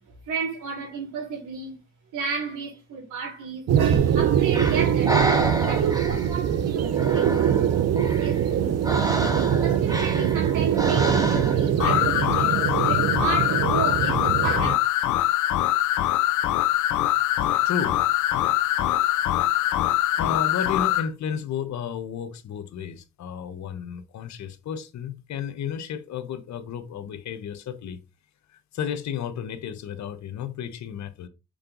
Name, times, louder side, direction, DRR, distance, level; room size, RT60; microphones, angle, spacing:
voice 1, 0.3-1.8 2.1-5.2 5.7-8.9 9.1-14.7, right 5 dB, 90° right, 4.0 m, -32 dB
sound 1, 3.7-14.7, right 9 dB, 55° right, 0.7 m, -23 dB
Breathing, 3.9-11.8, right 1 dB, 10° right, 1.5 m, -30 dB
sound 2, 11.8-21.1, left 13 dB, 90° left, 0.7 m, -23 dB
voice 2, 17.6-18.0 18.8-18.9 20.2-28.0 28.5-31.3, left 7 dB, 65° left, 1.0 m, -33 dB
6.6 x 3.8 x 3.8 m
cardioid pair, 90°, 30 cm